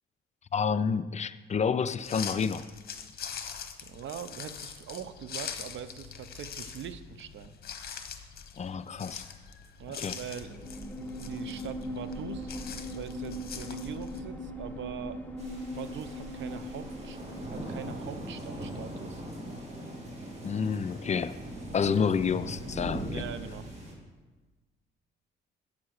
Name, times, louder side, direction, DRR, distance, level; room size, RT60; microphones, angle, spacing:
voice 1, 0.5-2.7 8.6-9.2 10.0-10.1 20.4-21.4 21.7-23.2, left 6 dB, 35° left, 13 dB, 0.4 m, -29 dB
sound 1, 2.0-14.2, left 7 dB, 50° left, 1.1 m, -43 dB
voice 2, 3.8-7.5 9.8-12.5 12.9-15.2 15.7-19.2 23.1-23.7, right 8 dB, 70° right, 12 dB, 0.7 m, -42 dB
sound 2, 10.4-18.3, left 1 dB, 10° left, 1.3 m, -40 dB
sound 3, 15.4-23.9, right 1 dB, 35° right, 2.7 m, -40 dB
8.7 x 6.8 x 6.5 m, 1.3 s
cardioid pair, 90°, 20 cm